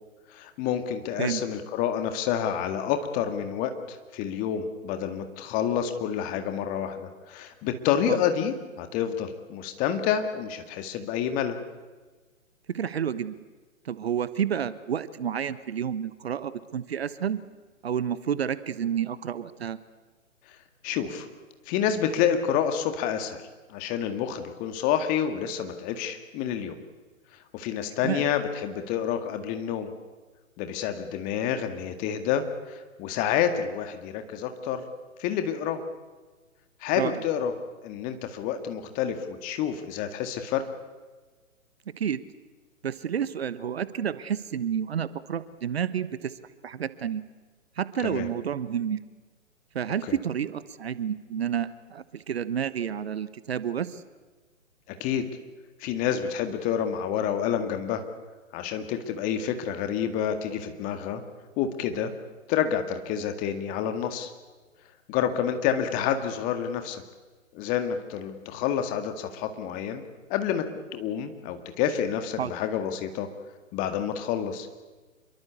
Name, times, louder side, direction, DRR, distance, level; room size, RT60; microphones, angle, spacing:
voice 1, 0.3-11.6 20.8-21.3 21.7-23.4 23.7-26.8 27.5-29.9 30.6-34.8 35.2-35.8 36.8-37.5 37.8-40.6 48.0-48.3 54.9-55.2 55.8-58.0 58.5-61.2 61.6-62.1 62.5-64.3 65.1-67.0 67.5-70.0 70.3-73.3 73.7-74.7, left 9 dB, 20° left, 8 dB, 2.0 m, -28 dB
voice 2, 12.7-13.3 13.8-17.4 17.8-19.8 28.0-28.3 36.9-37.2 42.0-42.2 42.8-46.3 46.6-47.2 47.8-49.0 49.7-54.0 72.4-72.5, right 8 dB, 50° right, 15 dB, 1.2 m, -30 dB
27.0 x 23.0 x 8.3 m, 1.3 s
figure-of-eight pair, 135°, 40 cm